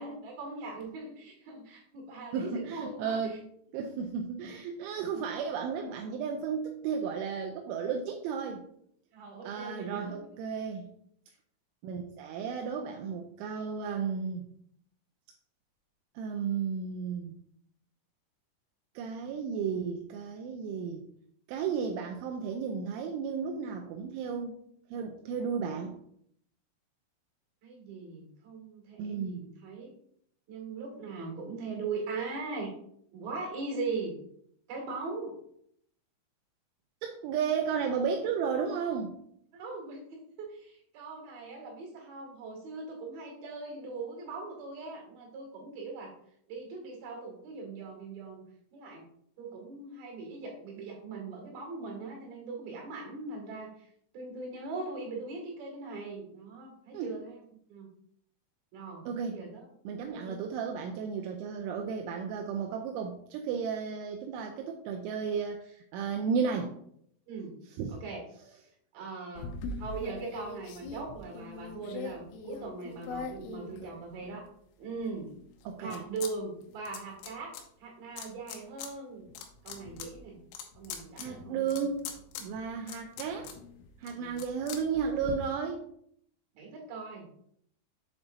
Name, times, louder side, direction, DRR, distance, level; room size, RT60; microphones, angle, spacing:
voice 1, 0.0-3.4 9.1-10.2 27.6-29.9 30.5-32.7 33.1-34.1 34.7-35.4 39.5-46.1 46.5-48.4 48.7-49.0 49.4-57.4 57.7-57.9 58.7-59.7 60.1-60.5 67.3-67.5 67.9-68.2 68.9-69.5 69.8-74.5 74.8-75.3 75.8-77.5 77.8-79.3 79.6-80.4 80.7-81.9 82.4-82.5 84.1-84.4 86.6-87.3, right 3 dB, 55° right, 0 dB, 3.6 m, -40 dB
voice 2, 2.3-3.4 3.7-8.6 9.4-10.9 11.8-14.5 16.2-17.4 19.0-21.0 21.5-24.5 24.9-26.0 29.0-29.5 37.0-39.2 56.9-57.2 59.1-59.4 59.9-66.8 67.8-68.0 75.7-76.0 81.2-82.0 82.4-83.5 84.0-85.9, right 6 dB, 85° right, 3 dB, 2.9 m, -33 dB
sound 1, 69.4-74.4 74.9-76.3 76.6-77.6 78.2-78.9 79.3-85.3, left 4 dB, 90° left, 3.4 m, -42 dB
8.1 x 6.9 x 2.7 m, 0.68 s
omnidirectional pair, 5.6 m